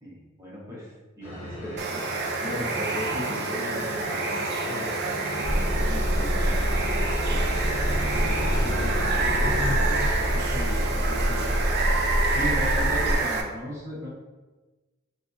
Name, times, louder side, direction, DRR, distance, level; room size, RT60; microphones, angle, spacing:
voice 1, 0.0-2.1 2.4-7.2 12.3-14.1, equal, 15° right, -7 dB, 0.8 m, -36 dB
sound 1, 1.2-10.1, left 1 dB, 30° left, 1.4 m, -35 dB
Water, 1.8-13.4, right 3 dB, 50° right, 0.3 m, -28 dB
sound 2, 5.4-13.2, equal, 80° left, 1.0 m, -26 dB
voice 2, 8.1-11.6, left 2 dB, 50° left, -7 dB, 0.5 m, -37 dB
3.7 x 2.5 x 2.5 m, 1.2 s
head